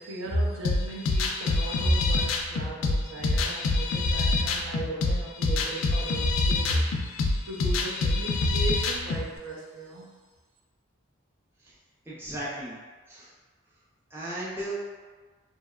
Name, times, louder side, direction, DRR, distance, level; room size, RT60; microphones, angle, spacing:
voice 1, 0.0-10.1, right 1 dB, 75° right, -3 dB, 0.5 m, -34 dB
sound 1, 0.6-9.2, left 3 dB, 75° left, 0.3 m, -26 dB
voice 2, 12.0-12.8 13.1-13.3 14.1-14.8, right 1 dB, 10° right, -9 dB, 0.4 m, -36 dB
2.8 x 2.0 x 2.3 m, 1.4 s
head